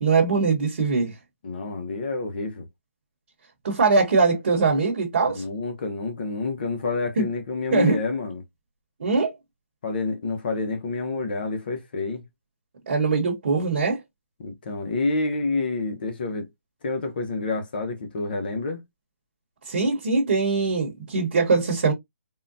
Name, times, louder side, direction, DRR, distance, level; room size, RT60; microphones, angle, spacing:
voice 1, 0.0-1.1 3.6-5.4 7.2-7.3 7.7-8.0 9.0-9.3 12.9-14.0 19.7-21.9, right 4 dB, 50° right, 1.0 m, -22 dB
voice 2, 1.4-2.7 5.3-8.4 9.8-12.2 14.4-16.5 16.8-18.8, left 3 dB, 40° left, 0.6 m, -28 dB
3.7 x 2.1 x 2.5 m
hypercardioid pair, 170°, 7 cm